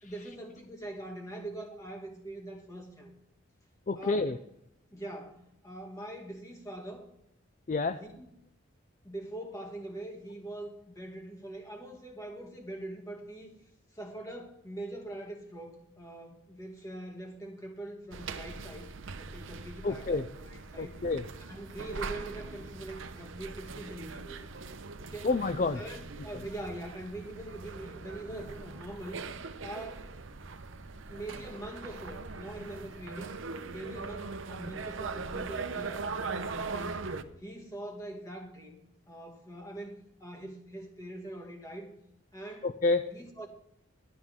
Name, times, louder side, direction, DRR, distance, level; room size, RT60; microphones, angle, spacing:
voice 1, 0.0-3.1 3.9-4.2 4.9-7.1 8.0-8.3 9.0-13.5 13.9-18.9 19.2-21.0 21.4-24.6 25.0-25.3 25.7-29.2 29.6-30.1 31.1-33.3 33.7-37.0 37.4-38.8 39.1-41.9 42.3-42.7 43.1-43.5, right 1 dB, 15° left, 1 dB, 2.2 m, -43 dB
voice 2, 3.9-4.4 7.7-8.0 19.8-20.2 20.8-21.2 25.2-25.8 42.6-43.1, left 3 dB, 40° left, 10 dB, 0.4 m, -28 dB
sound 1, 18.1-37.2, right 4 dB, 75° right, 0.8 m, -41 dB
12.0 x 12.0 x 3.6 m, 0.81 s
head